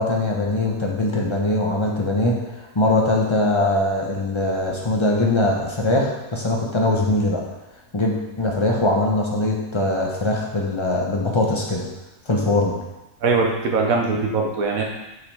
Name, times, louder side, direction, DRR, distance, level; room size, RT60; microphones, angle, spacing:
voice 1, 0.0-7.4 7.9-11.8 12.3-12.7, left 2 dB, 25° left, -1 dB, 0.8 m, -21 dB
voice 2, 13.2-14.8, right 4 dB, 80° right, 1 dB, 1.2 m, -21 dB
6.1 x 5.4 x 3.4 m, 1.0 s
omnidirectional pair, 1.4 m